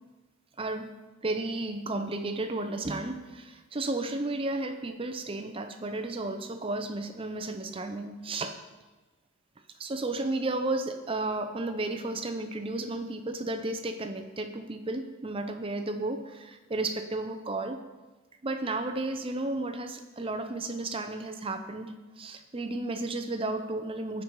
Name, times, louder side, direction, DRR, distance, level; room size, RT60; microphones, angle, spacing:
voice 1, 0.6-0.9 1.2-8.6 9.8-17.8 18.4-24.2, right 2 dB, 25° right, 7 dB, 0.5 m, -33 dB
15.5 x 5.3 x 4.6 m, 1.2 s
head